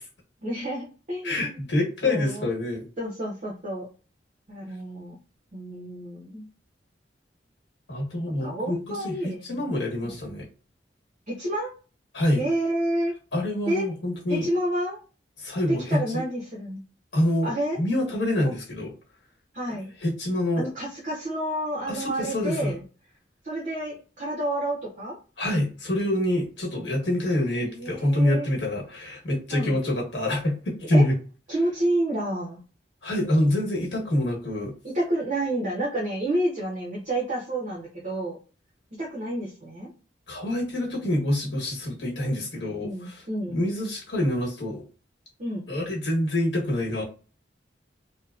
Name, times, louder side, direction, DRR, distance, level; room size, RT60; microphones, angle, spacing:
voice 1, 0.4-1.6 2.0-2.5 3.0-3.9 4.5-5.2 5.5-6.5 8.4-9.7 10.0-10.1 11.3-11.7 12.4-13.1 13.7-13.9 14.3-15.0 15.7-16.8 17.4-17.8 18.4-18.5 19.5-19.9 20.6-22.8 23.4-25.2 27.6-28.5 29.5-29.8 30.9-31.0 31.5-32.6 34.8-38.4 39.0-39.9 42.8-43.6 45.4-45.7, right 1 dB, 45° right, -5 dB, 0.7 m, -29 dB
voice 2, 1.2-2.9 7.9-10.5 12.1-12.4 13.3-14.5 15.4-16.0 17.1-18.9 20.0-20.7 21.9-22.7 25.4-31.1 33.0-34.7 40.3-43.2 43.5-44.8 45.7-47.0, left 1 dB, 85° left, -2 dB, 1.1 m, -26 dB
2.7 x 2.0 x 2.4 m, 0.36 s
head